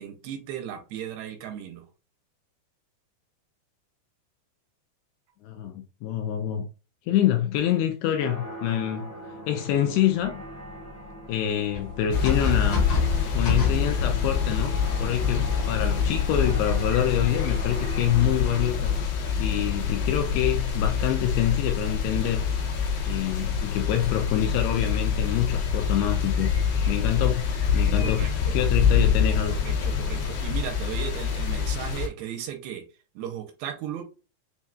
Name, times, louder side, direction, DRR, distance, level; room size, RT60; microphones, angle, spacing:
voice 1, 0.0-1.9 28.0-28.5 29.7-32.8 33.2-34.0, right 10 dB, 85° right, 2.6 m, -36 dB
voice 2, 5.4-6.7 7.1-9.1 9.5-10.4 11.3-12.9 13.4-19.1 19.4-22.7 23.1-26.5 26.9-29.6, left 11 dB, 80° left, 2.4 m, -26 dB
sound 1, 8.2-19.0, right 1 dB, 20° left, 0.4 m, -40 dB
sound 2, 11.7-14.8 16.0-16.9 17.5-17.9 19.4-19.7, left 4 dB, 50° left, 1.5 m, -28 dB
sound 3, 12.1-32.1, left 6 dB, 65° left, 2.4 m, -26 dB
7.1 x 2.6 x 2.3 m
omnidirectional pair, 5.0 m